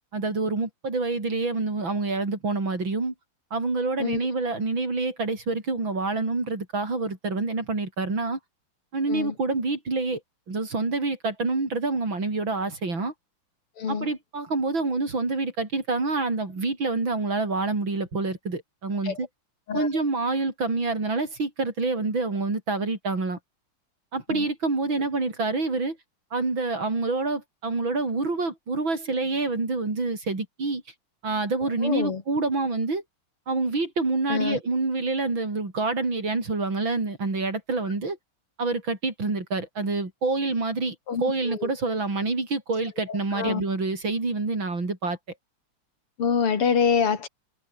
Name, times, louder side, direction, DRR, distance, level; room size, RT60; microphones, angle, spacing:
voice 1, 0.1-3.1 3.5-8.4 8.9-10.2 10.5-13.1 13.9-19.3 19.7-23.4 24.1-26.0 26.3-30.8 31.2-33.0 33.5-38.2 38.6-45.2, right 3 dB, 60° right, 5.9 m, -27 dB
voice 2, 13.8-14.1 19.0-19.2 19.7-19.9 24.3-24.5 31.8-32.2 34.3-34.6 41.1-41.7 43.1-43.6 46.2-47.3, left 6 dB, 85° left, 3.6 m, -26 dB
omnidirectional pair, 2.4 m